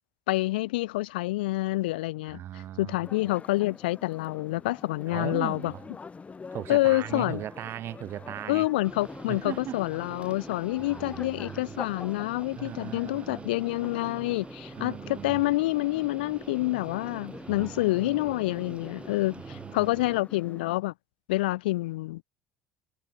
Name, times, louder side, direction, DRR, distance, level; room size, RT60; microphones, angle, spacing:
voice 1, 0.3-5.7 6.7-7.4 8.5-20.9 21.3-22.2, left 19 dB, 80° left, 0.4 m, -28 dB
voice 2, 2.3-3.0 5.1-5.8 6.5-8.7 9.3-9.8 10.8-11.8 12.5-13.5 14.8-15.4 17.5-18.2 19.5-19.9, right 12 dB, 50° right, 1.7 m, -38 dB
sound 1, 3.0-20.8, left 4 dB, 25° left, 4.9 m, -46 dB
sound 2, 8.8-20.2, right 4 dB, 20° right, 6.7 m, -45 dB
hypercardioid pair, 70°, 5 cm